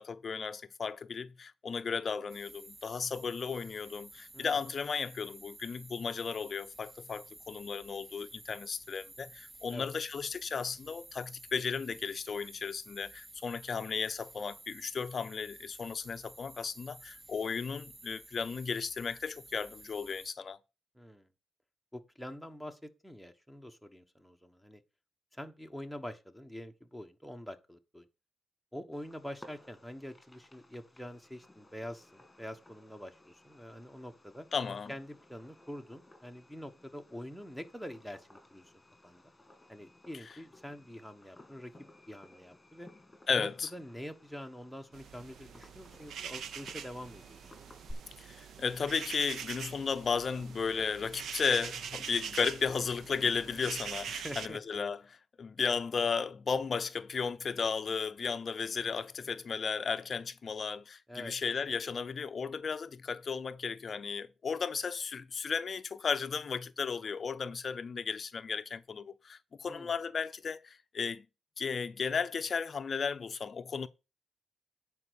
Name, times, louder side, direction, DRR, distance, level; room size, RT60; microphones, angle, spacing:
voice 1, 0.0-20.6 34.5-34.9 43.3-43.7 48.2-71.2 71.6-73.9, left 5 dB, 50° left, 0.5 m, -35 dB
sound 1, 2.3-20.3, right 2 dB, 25° right, 1.1 m, -53 dB
voice 2, 4.3-4.6 9.7-9.9 20.9-21.3 21.9-24.8 25.3-28.1 28.7-34.5 34.9-38.7 39.0-39.3 39.7-41.7 42.1-42.9 43.3-47.5 54.2-54.6 61.1-61.4 69.6-70.0, equal, ahead, 1.3 m, -45 dB
Fireworks, 28.9-47.9, left 2 dB, 15° left, 2.4 m, -58 dB
sound 2, 44.9-54.5, right 7 dB, 80° right, 0.7 m, -43 dB
9.7 x 4.7 x 6.9 m
cardioid pair, 85°, 0 cm